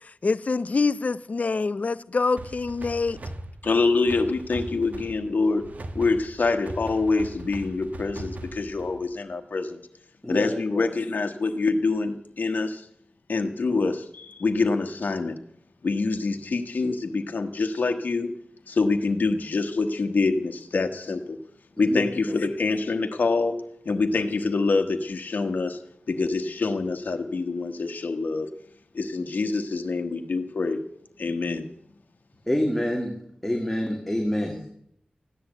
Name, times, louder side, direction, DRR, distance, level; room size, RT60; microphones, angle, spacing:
voice 1, 0.2-3.2, left 4 dB, 55° left, 0.6 m, -25 dB
sound 1, 2.4-9.1, right 2 dB, 60° right, 1.4 m, -40 dB
voice 2, 3.6-9.8 10.3-12.9 13.3-15.3 15.8-18.3 18.7-21.4 21.8-25.8 26.1-28.5 28.9-30.8 31.2-31.7, left 3 dB, 75° left, 1.2 m, -26 dB
voice 3, 10.2-10.9 21.8-22.0 22.3-22.4 32.5-33.1 33.4-34.7, left 1 dB, 5° left, 2.3 m, -27 dB
14.5 x 10.5 x 8.0 m
wide cardioid pair, 75°, 3 cm